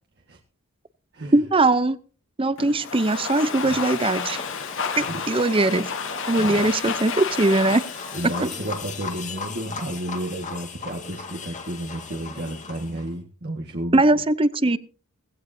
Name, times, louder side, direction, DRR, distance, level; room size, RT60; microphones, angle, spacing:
voice 1, 1.3-2.0 2.4-4.4 5.0-5.9 6.3-7.8 8.4-8.5 13.9-14.8, right 2 dB, 25° right, 15 dB, 0.7 m, -20 dB
Domestic sounds home sounds, 2.6-9.5, left 5 dB, 60° left, 1.5 m, -31 dB
sound 1, 3.0-13.1, left 5 dB, 35° left, 1.9 m, -37 dB
voice 2, 5.0-5.4 6.4-6.7 8.1-14.0, right 1 dB, 50° right, 2 dB, 1.6 m, -32 dB
18.0 x 16.0 x 2.8 m, 0.39 s
head